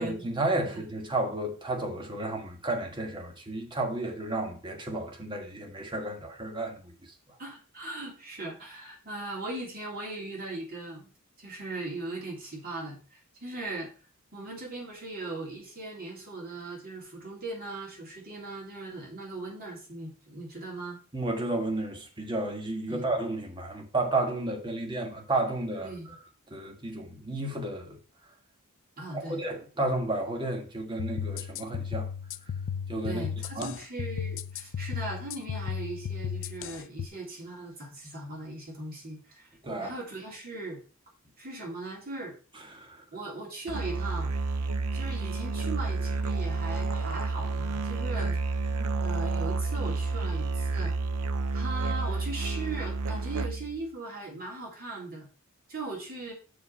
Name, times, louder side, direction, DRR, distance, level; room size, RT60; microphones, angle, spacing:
voice 1, 0.0-6.9 21.1-25.9 26.5-28.0 29.1-32.1 32.9-33.2 33.5-33.7 39.6-39.9 42.7-43.0 48.8-48.9, right 2 dB, 20° right, 1.6 m, -32 dB
voice 2, 7.4-11.1 11.4-13.9 14.3-21.0 22.9-23.0 25.8-26.1 29.0-29.4 33.0-39.5 39.8-40.8 41.4-42.3 43.1-44.3 44.9-48.4 49.0-50.9 51.5-55.3 55.7-56.3, right 2 dB, 45° right, 3.3 m, -39 dB
sound 1, 31.0-37.1, left 7 dB, 60° left, 0.4 m, -35 dB
Musical instrument, 43.7-53.8, right 3 dB, 80° right, 0.5 m, -30 dB
6.2 x 5.1 x 5.5 m
head